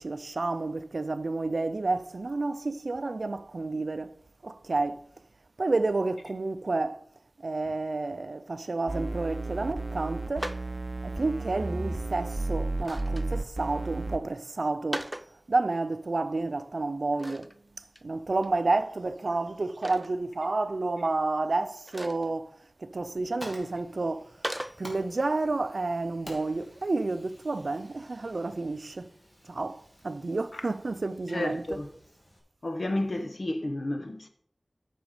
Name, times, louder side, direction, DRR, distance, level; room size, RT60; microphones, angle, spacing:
voice 1, 0.0-4.1 4.4-5.0 5.6-7.0 7.4-10.6 11.0-15.1 15.5-17.5 18.0-22.5 22.8-24.3 24.8-29.1 29.5-31.8, right 3 dB, 80° right, 0.4 m, -30 dB
sound 1, 8.9-14.2, right 2 dB, 40° right, 0.9 m, -33 dB
sound 2, 10.4-10.7 12.7-13.3 14.7-15.3 17.1-17.6 18.0-18.1 18.4-18.5 19.8-20.1 21.9-22.3 24.4-24.8, equal, 10° right, 0.4 m, -37 dB
Fire, 22.9-32.4, equal, 30° left, 2.9 m, -51 dB
voice 2, 31.3-31.9 32.6-34.3, left 1 dB, 65° left, 1.1 m, -31 dB
8.9 x 6.2 x 4.9 m
wide cardioid pair, 55°, 0 cm